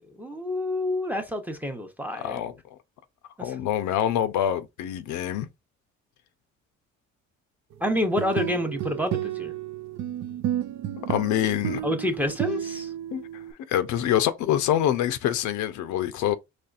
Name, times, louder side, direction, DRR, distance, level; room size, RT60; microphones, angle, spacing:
voice 1, 0.2-2.4 3.4-3.6 7.8-9.5 11.8-12.9, left 1 dB, 5° right, 0.8 m, -28 dB
voice 2, 2.2-2.5 3.4-5.5 11.0-11.8 13.1-13.4 13.7-16.4, left 11 dB, 70° left, 0.6 m, -25 dB
sound 1, 8.0-13.5, right 11 dB, 65° right, 0.5 m, -32 dB
4.2 x 3.1 x 2.4 m
cardioid pair, 100°, 30 cm